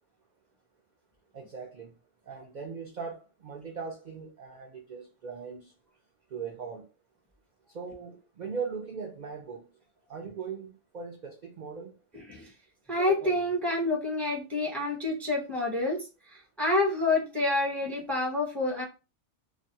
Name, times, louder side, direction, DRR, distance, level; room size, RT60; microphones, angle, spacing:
voice 1, 1.3-1.9 2.2-5.7 6.3-6.9 7.7-9.7 10.1-11.9, right 5 dB, 55° right, 0.5 m, -39 dB
voice 2, 12.9-18.8, left 2 dB, ahead, 0.6 m, -28 dB
2.5 x 2.2 x 2.6 m
omnidirectional pair, 1.2 m